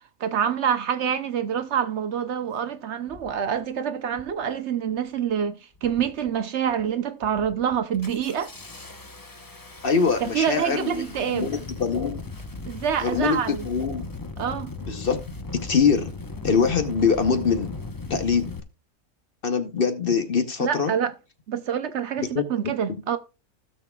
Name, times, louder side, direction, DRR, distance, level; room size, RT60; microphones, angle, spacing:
voice 1, 0.2-8.5 10.2-11.5 12.7-13.7 14.4-14.7 20.6-21.1 21.5-23.2, right 8 dB, 60° right, 0.9 m, -26 dB
Engine starting, 2.3-2.4 3.1-3.4 4.1-4.4 4.8-5.3 5.7-6.3 6.7-6.9 7.2-18.6, left 3 dB, 20° left, 0.7 m, -38 dB
voice 2, 9.8-12.2 13.0-14.1 14.8-15.2 15.5-16.1 16.4-17.7 18.1-18.5 19.4-20.9 22.2-23.0, left 5 dB, 50° left, 1.0 m, -24 dB
16.0 x 6.6 x 2.3 m
omnidirectional pair, 1.4 m